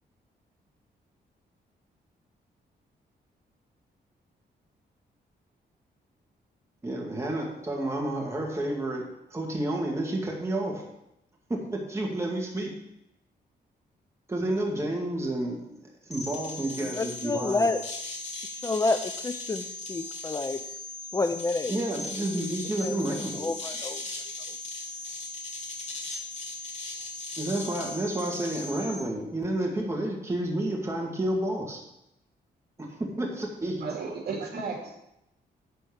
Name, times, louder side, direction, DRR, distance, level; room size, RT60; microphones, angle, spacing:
voice 1, 6.8-10.8 11.5-12.7 14.3-17.7 21.7-23.5 27.4-31.8 32.8-33.9, right 1 dB, 15° right, -1 dB, 2.1 m, -30 dB
sound 1, 16.1-29.0, left 3 dB, 40° left, 2.1 m, -38 dB
voice 2, 17.0-17.8 18.5-20.6 21.1-21.7 22.3-22.5 22.8-24.0, left 3 dB, 20° left, 9 dB, 0.4 m, -29 dB
voice 3, 33.8-35.0, right 4 dB, 65° right, 0 dB, 2.7 m, -34 dB
11.5 x 4.5 x 7.0 m, 0.85 s
wide cardioid pair, 140°, 17 cm